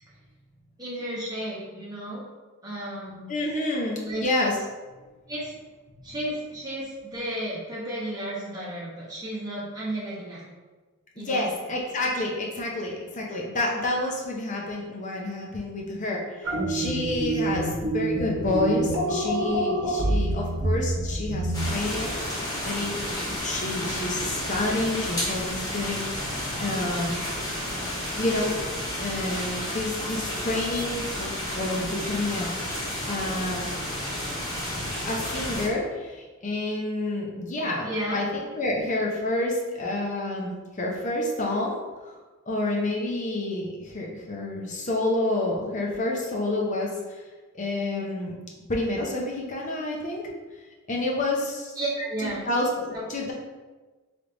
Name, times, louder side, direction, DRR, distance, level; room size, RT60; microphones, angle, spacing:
voice 1, 0.8-2.2 2.6-3.3 4.0-4.2 5.3-5.6 6.0-10.4 11.2-11.5 37.8-38.2 51.8-52.4 52.9-53.0, right 1 dB, 15° right, -7 dB, 1.2 m, -33 dB
voice 2, 3.3-4.6 5.0-5.1 11.3-26.1 26.6-27.2 28.2-28.6 29.0-33.7 34.7-41.8 42.0-42.2 42.5-47.2 47.5-48.3 48.7-50.2 50.9-51.8 52.2-53.3, left 2 dB, 35° left, -1 dB, 0.7 m, -29 dB
sound 1, 16.4-21.7, right 2 dB, 65° right, 0.9 m, -27 dB
sound 2, 21.5-35.7, left 1 dB, 15° left, 1.1 m, -31 dB
3.4 x 3.3 x 3.9 m, 1.3 s
head